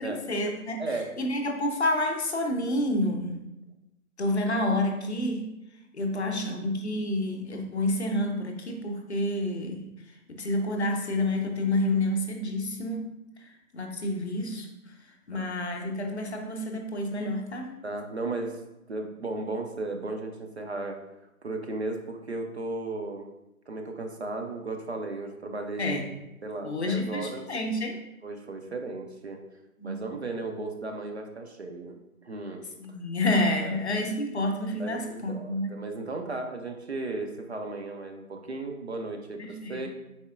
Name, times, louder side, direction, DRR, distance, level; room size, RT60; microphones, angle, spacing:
voice 1, 0.0-0.8 1.2-3.4 4.2-5.5 5.9-9.8 10.3-13.0 13.7-14.7 15.3-17.7 25.8-26.0 26.6-27.9 29.8-30.1 32.8-35.7 39.4-39.9, left 1 dB, 50° left, 3 dB, 0.6 m, -29 dB
voice 2, 0.8-1.2 6.3-6.4 15.3-15.5 17.8-21.0 21.4-23.3 23.7-26.0 26.4-27.5 28.2-29.4 29.8-32.0 32.2-32.6 33.6-34.1 34.8-39.9, right 2 dB, 50° right, 4 dB, 0.5 m, -35 dB
4.2 x 3.9 x 2.4 m, 0.91 s
figure-of-eight pair, 160°, 44 cm